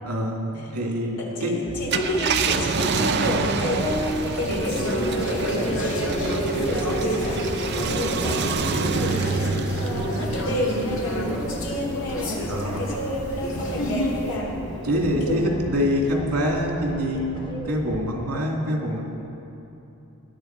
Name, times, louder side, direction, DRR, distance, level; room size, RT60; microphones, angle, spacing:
voice 1, 0.0-0.4 0.7-1.5 12.5-12.9 14.8-19.0, equal, 85° right, 0 dB, 2.4 m, -25 dB
voice 2, 1.2-15.6, left 1 dB, 85° left, -3 dB, 3.3 m, -29 dB
sound 1, 1.7-18.1, equal, 25° left, 1.1 m, -37 dB
Car, 1.8-12.6 13.1-13.2 15.2-15.5, right 5 dB, 50° right, 0.6 m, -28 dB
sound 2, 3.8-14.3, equal, 60° left, 2.1 m, -29 dB
19.5 x 10.5 x 4.6 m, 2.9 s
head